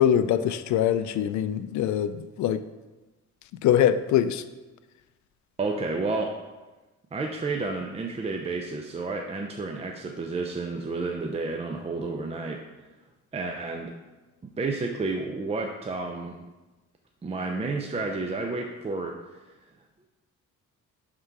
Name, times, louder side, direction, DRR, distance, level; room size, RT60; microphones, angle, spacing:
voice 1, 0.0-2.6 3.6-4.4, left 10 dB, 75° left, 13 dB, 0.4 m, -23 dB
voice 2, 5.6-6.3 7.1-12.6 13.3-13.9 14.6-16.4 17.2-19.1, right 3 dB, 20° right, 2 dB, 0.5 m, -31 dB
6.6 x 3.7 x 4.6 m, 1.1 s
cardioid pair, 90°, 30 cm